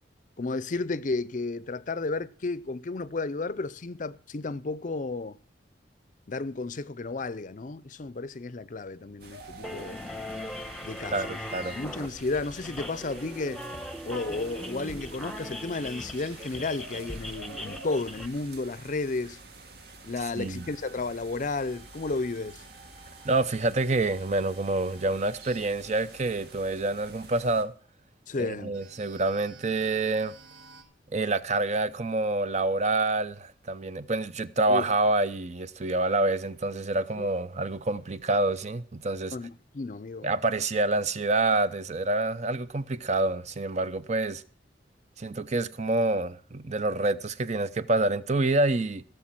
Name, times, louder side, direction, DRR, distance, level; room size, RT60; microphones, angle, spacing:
voice 1, 0.4-5.4 6.3-10.1 10.8-11.4 11.7-13.6 14.0-19.4 20.0-22.6 28.3-28.8 34.7-34.9 37.2-37.3 39.3-40.3, left 3 dB, 45° left, 0.6 m, -33 dB
sound 1, 9.2-27.6, right 2 dB, 60° right, 2.1 m, -48 dB
sound 2, 9.6-18.3, left 1 dB, 5° left, 1.0 m, -39 dB
voice 2, 11.1-11.8 20.4-20.6 23.2-27.7 28.4-30.3 31.1-39.3 40.2-44.4 45.2-49.0, right 2 dB, 40° right, 0.7 m, -27 dB
sound 3, 21.7-27.7 28.7-30.8, right 4 dB, 85° right, 5.1 m, -55 dB
17.0 x 6.9 x 7.4 m
head